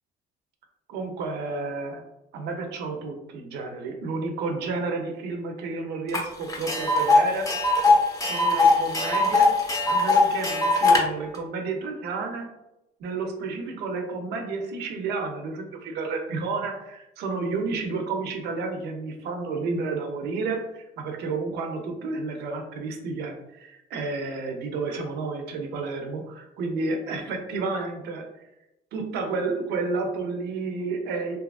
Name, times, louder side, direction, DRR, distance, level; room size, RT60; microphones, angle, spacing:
voice 1, 0.9-2.0 2.3-7.5 8.2-9.5 9.8-12.5 13.0-28.3 28.9-31.4, right 3 dB, 80° right, 4 dB, 0.6 m, -31 dB
Tick, 6.1-6.2 6.5-11.0, left 3 dB, 20° left, 0.6 m, -20 dB
2.8 x 2.4 x 2.3 m, 0.90 s
cardioid pair, 110°, 17 cm